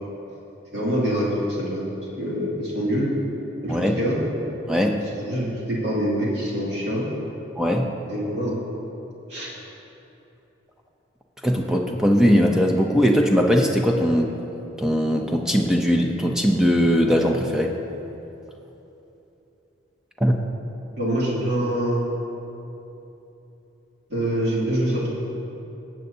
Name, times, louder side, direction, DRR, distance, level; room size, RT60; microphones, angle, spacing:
voice 1, 0.7-1.3 1.6-1.8 2.2-3.1 3.6-4.2 5.2-7.0 8.1-8.6 9.3-9.5 21.0-22.0 24.1-25.1, right 1 dB, 55° right, -6 dB, 2.6 m, -25 dB
voice 2, 3.7-4.0 4.7-5.0 7.6-7.9 11.4-14.4 14.8-17.8 20.2-20.4, equal, 5° right, 1 dB, 0.5 m, -20 dB
18.5 x 7.7 x 2.7 m, 3.0 s
head